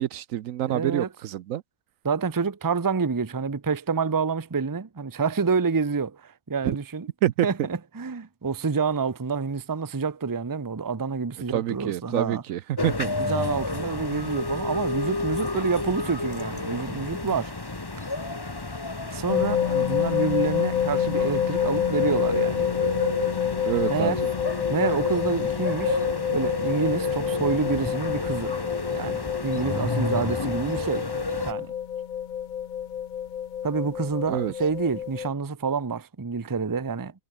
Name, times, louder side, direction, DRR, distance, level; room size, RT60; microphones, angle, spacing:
voice 1, 0.0-1.6 6.6-6.8 7.2-7.5 11.5-13.1 23.6-24.3 34.3-34.5, right 12 dB, 75° right, 1.0 m, -27 dB
voice 2, 0.7-1.1 2.0-7.1 7.4-12.4 13.3-17.5 19.1-22.7 23.9-24.2 24.7-26.0 26.3-28.5 28.9-31.1 31.5-31.7 33.6-37.1, right 5 dB, 20° right, 0.6 m, -28 dB
sound 1, 12.8-31.5, left 2 dB, 15° left, 1.2 m, -30 dB
sound 2, 19.3-35.3, left 9 dB, 55° left, 0.5 m, -28 dB
omnidirectional pair, 1.4 m